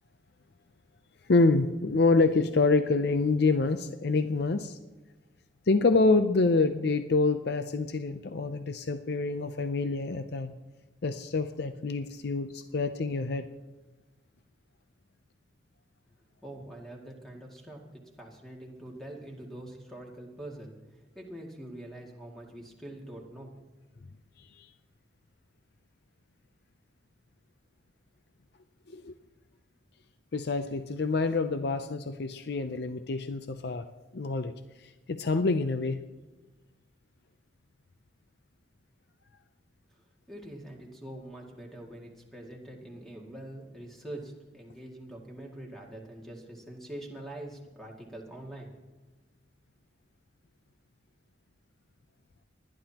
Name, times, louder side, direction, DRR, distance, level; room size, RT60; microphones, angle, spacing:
voice 1, 1.3-4.8 5.7-10.5 11.0-13.4 24.6-24.7 28.9-29.1 30.3-33.9 34.1-34.6 35.1-36.0, left 3 dB, 60° left, 9 dB, 0.6 m, -26 dB
voice 2, 16.4-23.6 39.9-48.7, right 1 dB, ahead, -1 dB, 2.2 m, -44 dB
29.5 x 11.0 x 2.9 m, 1.2 s
head